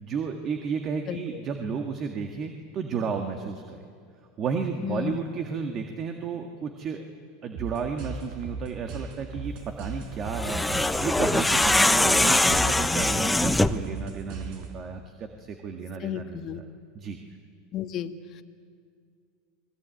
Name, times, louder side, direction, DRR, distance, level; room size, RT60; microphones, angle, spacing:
voice 1, 0.0-3.8 4.4-7.0 7.4-16.4 17.0-17.2, right 5 dB, 40° right, 5 dB, 2.0 m, -32 dB
voice 2, 1.1-1.4 4.8-5.2 16.0-16.6 17.7-18.4, left 10 dB, 45° left, 6 dB, 1.5 m, -33 dB
sound 1, 7.5-15.0, right 4 dB, 60° right, 5.3 m, -38 dB
sound 2, 10.3-13.9, left 2 dB, 5° left, 0.9 m, -22 dB
29.0 x 20.5 x 9.2 m, 2.2 s
hypercardioid pair, 110°, 0 cm